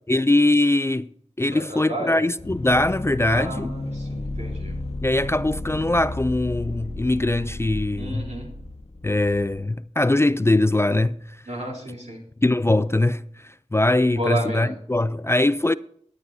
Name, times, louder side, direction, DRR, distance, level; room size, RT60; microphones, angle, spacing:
voice 1, 0.1-1.1 1.4-3.7 5.0-8.3 9.0-11.2 12.4-15.7, left 2 dB, 20° left, 0.3 m, -21 dB
voice 2, 1.5-2.2 3.3-4.7 8.0-8.5 11.5-12.2 14.2-14.8, right 1 dB, 70° right, 3.5 m, -31 dB
sound 1, 2.4-9.6, left 2 dB, 55° left, 1.4 m, -33 dB
18.0 x 9.7 x 2.7 m
wide cardioid pair, 45°, 12 cm